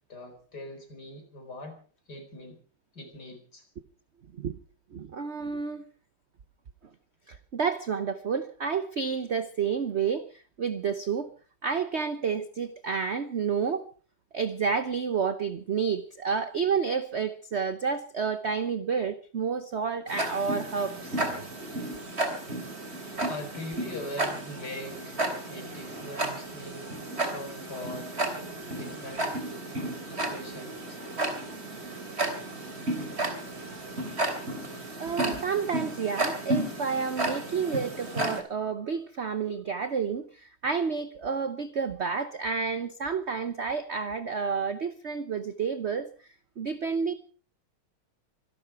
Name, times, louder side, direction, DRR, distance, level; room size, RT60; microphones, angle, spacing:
voice 1, 0.1-1.7 2.1-2.6 2.9-3.6 22.5-22.6 23.2-28.1 28.7-29.3 29.8-31.0, left 1 dB, 50° left, 5.1 m, -42 dB
voice 2, 4.9-5.8 7.3-11.3 11.6-13.8 14.3-21.2 35.0-46.1 46.6-47.1, right 6 dB, 55° right, 0.7 m, -30 dB
Tick-tock, 20.1-38.4, right 2 dB, 30° right, 3.3 m, -33 dB
25.5 x 12.0 x 4.6 m
omnidirectional pair, 2.2 m